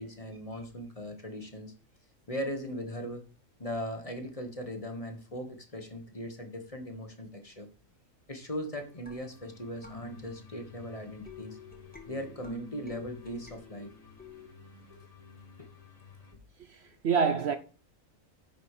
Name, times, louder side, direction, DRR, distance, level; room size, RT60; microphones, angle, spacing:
voice 1, 0.0-1.7 2.3-3.2 3.6-7.7 8.3-11.6 12.1-13.9 14.9-15.0 15.6-15.7, equal, 25° left, 1.5 m, -39 dB
sound 1, 8.8-16.3, left 4 dB, 60° left, 2.4 m, -55 dB
sound 2, 9.1-14.5, left 5 dB, 5° left, 1.6 m, -50 dB
voice 2, 16.7-17.6, right 6 dB, 60° right, 0.9 m, -27 dB
9.9 x 5.4 x 4.9 m
omnidirectional pair, 1.4 m